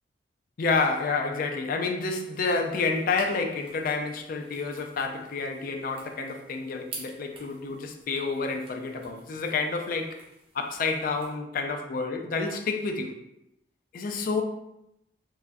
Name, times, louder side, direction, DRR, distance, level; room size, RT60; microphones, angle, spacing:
voice 1, 0.6-10.2 10.5-13.2 13.9-14.4, left 4 dB, 50° left, 0.3 m, -29 dB
sound 1, 2.3-11.3, right 3 dB, 30° right, 0.6 m, -50 dB
3.4 x 2.5 x 2.2 m
head